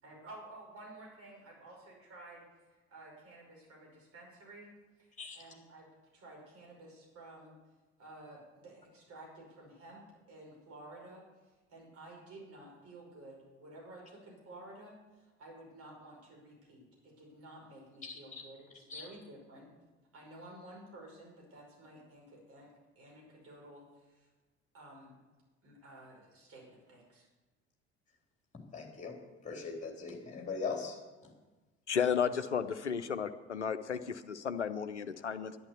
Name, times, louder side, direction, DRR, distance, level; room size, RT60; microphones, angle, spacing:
voice 1, 0.0-2.6 2.9-4.7 5.0-7.5 8.0-11.2 11.7-19.7 20.1-22.7 23.0-24.3 24.7-25.2 25.6-27.3, right 1 dB, 45° right, -1 dB, 5.6 m, -53 dB
voice 2, 18.0-18.4 18.9-19.0 28.7-29.2 29.4-31.0, left 4 dB, 20° left, 1 dB, 3.3 m, -40 dB
voice 3, 31.9-35.6, left 7 dB, 85° left, 11 dB, 0.6 m, -33 dB
11.5 x 9.9 x 7.0 m, 1.2 s
figure-of-eight pair, 60°, 34 cm